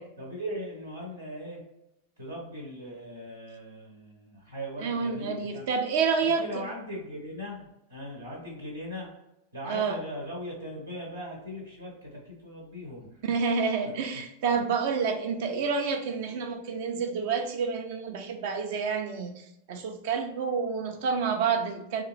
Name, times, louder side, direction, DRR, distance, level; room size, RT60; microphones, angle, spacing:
voice 1, 0.2-1.6 2.2-5.7 6.2-9.1 9.5-13.2 13.8-13.9, equal, 75° right, -2 dB, 1.0 m, -39 dB
voice 2, 4.8-6.4 9.7-10.0 13.2-22.0, right 5 dB, 50° right, 6 dB, 0.5 m, -29 dB
3.5 x 2.4 x 3.2 m, 0.89 s
figure-of-eight pair, 90°, 0 cm